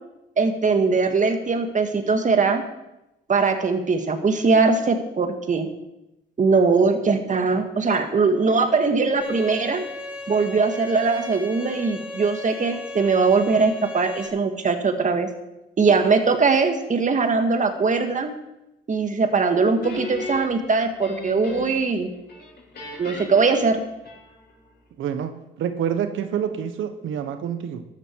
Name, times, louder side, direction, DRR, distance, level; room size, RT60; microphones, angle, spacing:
voice 1, 0.4-2.6 3.3-5.7 6.4-9.8 10.3-15.3 15.8-18.3 18.9-22.1 23.0-23.9, right 4 dB, 40° right, 6 dB, 1.9 m, -21 dB
Bowed string instrument, 9.2-14.3, left 2 dB, 5° right, 1.9 m, -36 dB
Guitar, 19.8-22.0 22.3-24.6, left 3 dB, 55° left, 5.9 m, -36 dB
voice 2, 25.0-27.8, right 8 dB, 80° right, 9 dB, 1.2 m, -27 dB
14.0 x 12.0 x 4.7 m, 0.94 s
cardioid pair, 90°, 20 cm